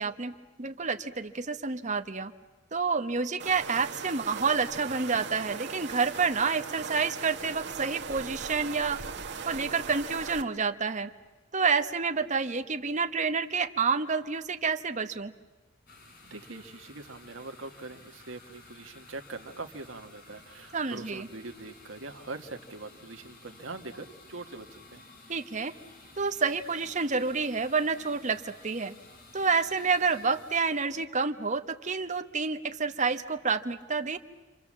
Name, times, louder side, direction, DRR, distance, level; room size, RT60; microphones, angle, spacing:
voice 1, 0.0-2.3 2.7-9.0 9.5-11.1 11.5-15.3 20.7-21.3 25.3-25.7 26.2-28.9 29.3-34.2, right 5 dB, 40° right, 8 dB, 1.1 m, -29 dB
sound 1, 3.4-10.4, right 5 dB, 60° right, 1.6 m, -39 dB
sound 2, 15.9-31.6, left 3 dB, 50° left, 4.0 m, -54 dB
voice 2, 16.2-25.0, right 3 dB, 80° right, 5 dB, 1.4 m, -43 dB
29.5 x 25.0 x 7.4 m, 1.2 s
head